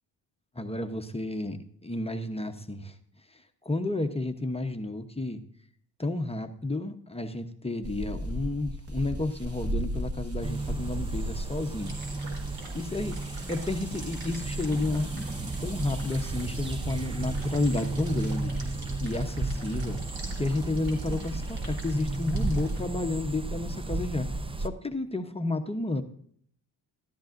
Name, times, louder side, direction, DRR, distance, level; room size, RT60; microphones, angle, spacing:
voice 1, 0.5-3.0 3.3-5.4 6.0-12.0 12.3-12.4 12.7-13.2 13.5-20.0 20.4-24.3 24.6-26.0, left 2 dB, 15° left, 6 dB, 0.8 m, -31 dB
sound 1, 7.8-18.3, right 1 dB, 30° right, 1.6 m, -38 dB
sound 2, 10.4-24.7, right 2 dB, 15° right, 0.4 m, -33 dB
sound 3, 11.8-22.8, right 2 dB, 75° right, 3.6 m, -48 dB
13.5 x 12.5 x 2.5 m, 0.62 s
cardioid pair, 100°, 45 cm